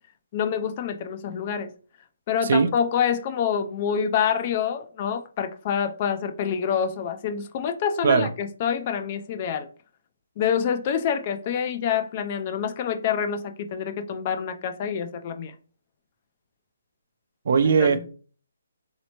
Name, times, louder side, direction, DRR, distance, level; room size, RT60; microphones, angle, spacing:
voice 1, 0.3-1.7 2.3-9.7 10.4-15.5 17.6-18.1, left 7 dB, 35° left, 0.4 m, -27 dB
voice 2, 17.5-18.1, right 5 dB, 55° right, 0.5 m, -19 dB
3.1 x 2.8 x 2.9 m
hypercardioid pair, 150°, 0 cm